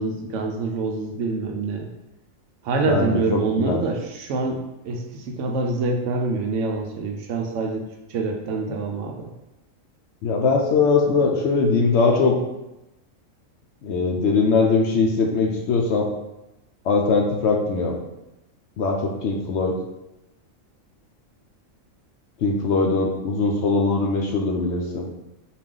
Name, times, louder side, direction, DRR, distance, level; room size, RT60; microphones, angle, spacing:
voice 1, 0.0-1.9 2.6-7.8 8.1-9.3, right 3 dB, 70° right, 2 dB, 0.9 m, -26 dB
voice 2, 2.9-3.8 10.2-12.4 13.8-16.1 16.8-18.0 18.8-19.7 22.4-25.1, left 4 dB, 65° left, 1 dB, 0.8 m, -21 dB
4.0 x 2.5 x 3.7 m, 0.95 s
omnidirectional pair, 1.4 m